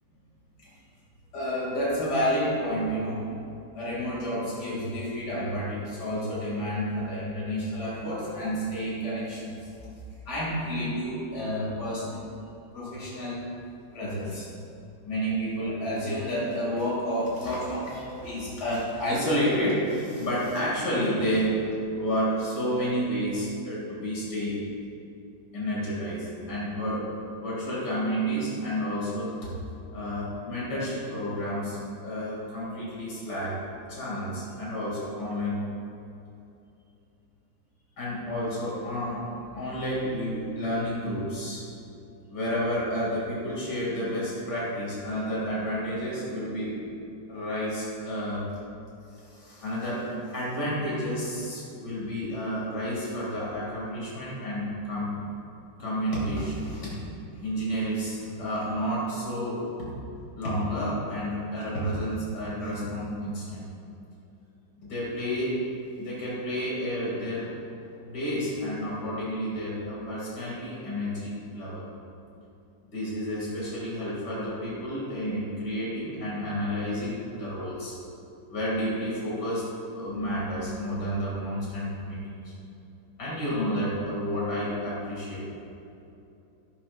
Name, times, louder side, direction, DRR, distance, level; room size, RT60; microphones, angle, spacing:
voice 1, 1.3-3.3 3.7-9.7 10.3-12.2 12.7-13.5 13.9-14.5 15.0-21.6 22.0-24.6 25.5-27.1 27.4-29.3 29.9-33.6 33.9-35.6 38.0-41.6 42.3-46.8 47.3-48.4 49.2-55.2 55.8-57.0 57.4-59.7 60.4-63.7 64.8-65.6 66.0-67.6 68.1-71.9 72.9-77.9 78.5-79.6 79.9-82.5 83.2-85.4, equal, 75° left, -7 dB, 3.4 m, -30 dB
12.5 x 12.5 x 2.6 m, 2.8 s
omnidirectional pair, 1.8 m